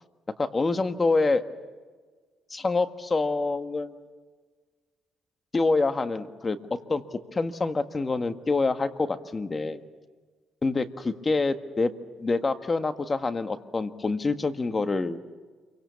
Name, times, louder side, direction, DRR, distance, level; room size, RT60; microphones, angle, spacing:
voice 1, 0.4-1.4 2.5-4.0 5.5-6.6 6.9-7.0 7.3-9.8 10.6-11.9 12.2-15.2, left 3 dB, 30° left, 9 dB, 1.6 m, -26 dB
28.0 x 24.0 x 7.1 m, 1.4 s
cardioid pair, 90°, 0 cm